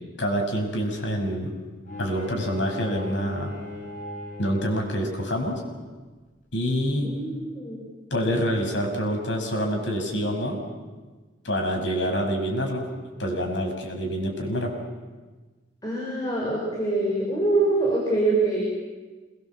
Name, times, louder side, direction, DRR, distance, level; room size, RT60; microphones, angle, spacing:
voice 1, 0.2-1.5 2.0-3.5 4.4-5.6 6.5-7.1 8.1-10.6 11.4-12.9 13.2-14.7, equal, 80° left, 2 dB, 6.0 m, -26 dB
Bowed string instrument, 1.8-5.1, left 1 dB, 45° left, 7.9 m, -38 dB
voice 2, 7.0-7.8 15.8-18.6, right 2 dB, 20° left, -4 dB, 5.9 m, -24 dB
27.0 x 22.0 x 7.5 m, 1.3 s
head